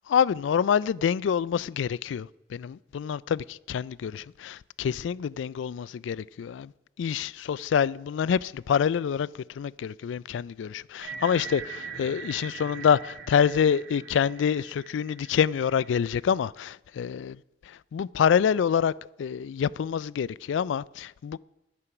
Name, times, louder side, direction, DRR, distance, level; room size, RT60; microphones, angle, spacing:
voice 1, 0.1-6.7 7.0-9.3 9.6-17.3 17.9-18.9 19.2-21.4, left 7 dB, 85° left, 0.3 m, -26 dB
sound 1, 11.0-16.2, right 5 dB, 80° right, 3.5 m, -42 dB
11.0 x 9.8 x 5.9 m
head